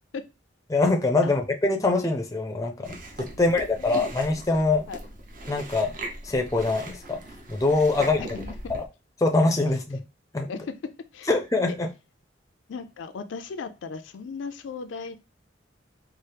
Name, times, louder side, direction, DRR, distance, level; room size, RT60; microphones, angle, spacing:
voice 1, 0.7-4.9 5.5-5.9 6.2-7.2 7.5-8.2 8.7-8.8 9.2-10.0 10.3-10.5 11.3-11.9, left 3 dB, 20° left, 0.4 m, -24 dB
Chewing mastication, 2.8-8.9, right 1 dB, 45° right, 0.7 m, -40 dB
voice 2, 3.3-4.1 4.9-5.0 8.0-8.7 10.5-10.8 11.1-11.3 11.7-11.8 12.7-15.2, left 5 dB, 85° left, 0.4 m, -37 dB
4.3 x 2.0 x 3.3 m
head